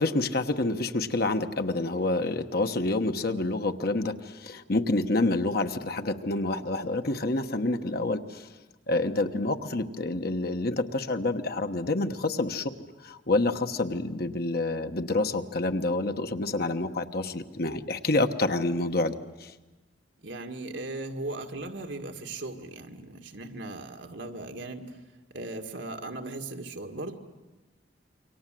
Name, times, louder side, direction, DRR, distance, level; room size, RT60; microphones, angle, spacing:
voice 1, 0.0-8.5 8.9-12.7 13.0-19.5, left 2 dB, 55° left, 7 dB, 1.2 m, -28 dB
voice 2, 20.2-25.0 25.3-27.1, right 2 dB, 80° right, 4 dB, 2.1 m, -38 dB
28.5 x 24.0 x 7.7 m, 1.2 s
head